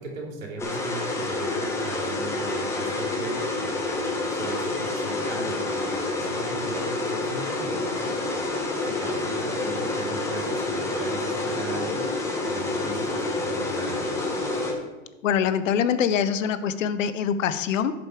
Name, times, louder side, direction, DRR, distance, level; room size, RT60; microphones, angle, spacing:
voice 1, 0.0-8.5 8.8-12.0 12.4-14.1, right 3 dB, 80° right, 0 dB, 3.0 m, -38 dB
sound 1, 0.6-14.7, left 2 dB, 5° left, 0.9 m, -28 dB
voice 2, 15.2-17.9, left 8 dB, 70° left, 12 dB, 0.8 m, -24 dB
11.5 x 5.2 x 4.6 m, 1.1 s
hypercardioid pair, 140°, 40 cm